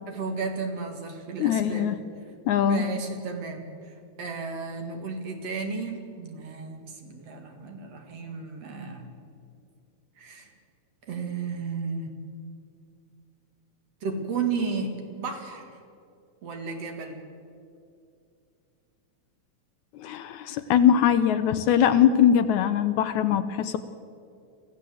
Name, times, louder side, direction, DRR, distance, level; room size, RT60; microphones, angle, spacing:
voice 1, 0.1-1.9 2.6-9.1 10.2-10.5 11.1-12.1 14.0-15.7 16.4-17.2, right 4 dB, 55° right, 4 dB, 2.9 m, -33 dB
voice 2, 1.4-2.0 2.5-2.8 20.0-23.8, left 9 dB, 75° left, 11 dB, 2.0 m, -21 dB
25.5 x 15.5 x 7.8 m, 2.5 s
omnidirectional pair, 3.7 m